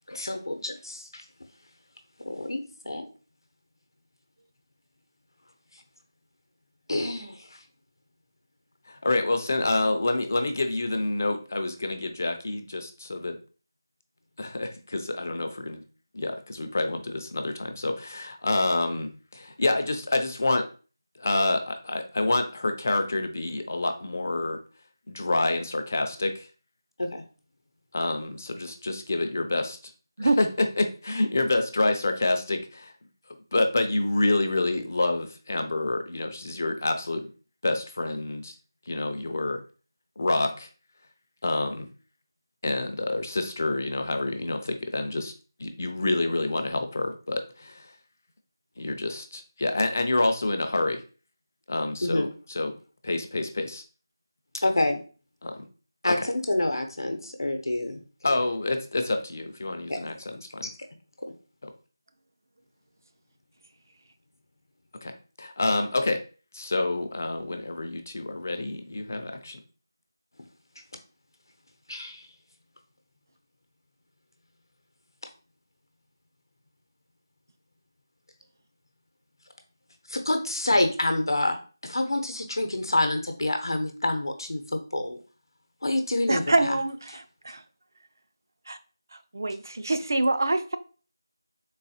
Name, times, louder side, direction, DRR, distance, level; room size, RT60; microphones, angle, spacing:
voice 1, 0.1-1.2 2.2-3.0 6.9-7.6 27.0-27.2 52.0-52.3 54.6-55.0 56.0-58.0 59.9-60.1 60.6-60.7 61.2-61.3 71.9-72.3 80.1-85.2 85.8-86.8, left 1 dB, 70° left, 0.8 m, -27 dB
voice 2, 8.9-13.4 14.4-15.8 16.1-20.7 21.2-24.6 25.1-26.5 27.9-29.8 30.2-32.9 33.5-37.3 37.6-38.5 38.9-39.6 40.2-40.7 41.4-41.9 42.6-45.3 45.6-47.9 48.8-51.0 51.7-52.7 53.0-53.8 55.4-55.6 56.1-56.3 58.2-60.2 60.5-60.7 61.6-61.7 65.0-65.1 65.4-66.2 66.5-69.6, left 2 dB, 35° left, 0.4 m, -27 dB
voice 3, 86.3-87.6 88.7-88.8 89.3-90.8, right 2 dB, 50° right, 0.4 m, -25 dB
3.9 x 2.4 x 2.7 m
figure-of-eight pair, 175°, 2 cm